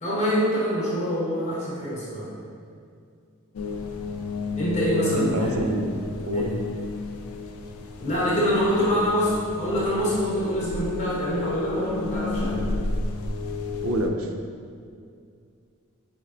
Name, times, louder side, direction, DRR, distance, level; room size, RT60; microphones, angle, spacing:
voice 1, 0.0-2.3 4.6-5.5 6.3-6.6 8.0-12.7, equal, 30° left, -8 dB, 0.7 m, -25 dB
sound 1, 3.5-14.1, left 4 dB, 75° left, 0.3 m, -32 dB
voice 2, 5.0-6.0 6.3-6.5 13.8-14.3, right 1 dB, 80° right, 3 dB, 0.4 m, -26 dB
4.1 x 3.1 x 2.4 m, 2.3 s
head